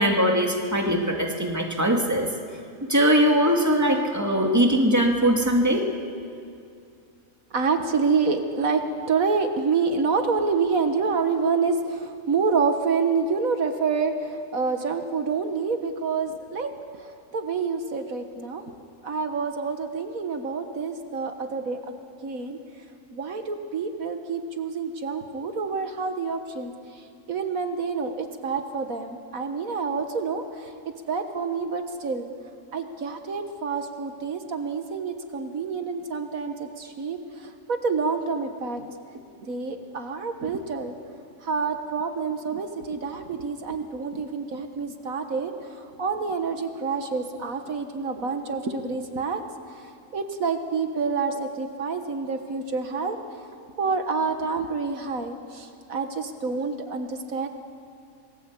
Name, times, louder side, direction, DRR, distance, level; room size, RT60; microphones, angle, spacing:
voice 1, 0.0-2.3 2.9-5.9, equal, 10° right, 1 dB, 2.3 m, -21 dB
voice 2, 7.5-17.1 17.3-18.7 19.0-21.9 22.2-22.6 23.1-26.7 27.3-30.7 31.1-32.3 32.7-40.9 41.4-49.4 49.8-49.9 50.1-53.2 53.8-57.5, right 5 dB, 75° right, 6 dB, 1.9 m, -28 dB
27.5 x 20.0 x 8.3 m, 2.5 s
omnidirectional pair, 1.5 m